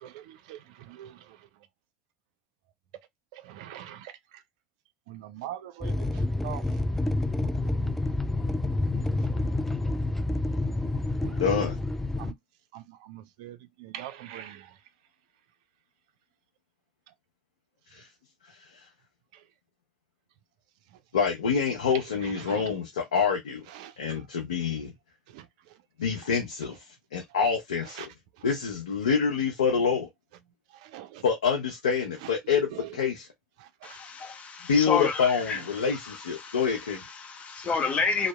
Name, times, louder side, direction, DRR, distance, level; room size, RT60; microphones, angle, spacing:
voice 1, 0.0-1.2 3.3-4.1 5.1-6.6 7.8-7.9 8.9-9.0 11.2-11.4 12.2-12.3 12.7-14.7 22.4-22.7 23.7-23.9 25.3-25.4 28.0-28.1 30.8-31.2 32.7-32.9 33.8-34.0 37.6-37.7, right 12 dB, 70° right, 0.3 m, -42 dB
sound 1, 5.8-12.3, left 2 dB, 5° left, 0.3 m, -28 dB
voice 2, 11.4-11.8 17.9-18.1 21.1-23.6 24.0-24.9 26.0-26.8 27.1-28.1 28.4-30.1 31.2-33.3 34.7-37.0, left 6 dB, 90° left, 0.5 m, -26 dB
voice 3, 33.8-36.6 37.2-38.3, left 5 dB, 40° left, 0.7 m, -30 dB
2.7 x 2.0 x 2.2 m
hypercardioid pair, 75°, 4 cm